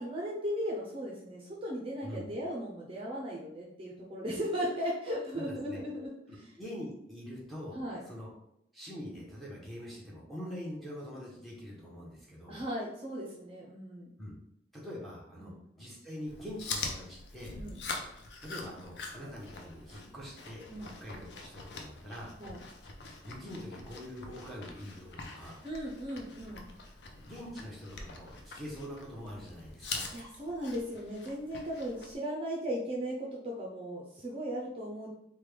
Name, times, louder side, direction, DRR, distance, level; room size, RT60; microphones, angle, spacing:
voice 1, 0.0-6.5 7.7-8.1 12.5-14.1 15.4-15.5 17.6-17.8 20.7-20.9 22.4-22.6 25.6-26.7 30.1-35.1, equal, 30° right, -4 dB, 0.5 m, -37 dB
voice 2, 5.4-5.8 6.6-8.3 8.7-12.7 14.2-14.3 14.7-17.6 18.4-22.3 23.2-25.6 27.2-30.1, equal, ahead, -6 dB, 0.8 m, -44 dB
Chewing mastication, 16.3-32.1, left 4 dB, 75° left, 0.5 m, -44 dB
3.2 x 2.2 x 3.3 m, 0.76 s
head